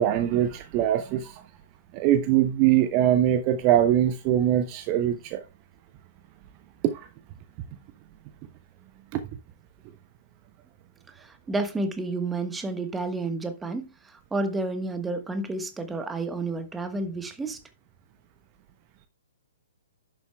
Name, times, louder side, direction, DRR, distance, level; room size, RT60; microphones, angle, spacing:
voice 1, 0.0-1.4 1.9-5.4 6.9-7.1 9.1-9.2, right 11 dB, 30° right, 0.8 m, -22 dB
voice 2, 11.2-17.6, right 2 dB, 10° right, 1.3 m, -30 dB
11.0 x 7.6 x 2.3 m
figure-of-eight pair, 120°, 0 cm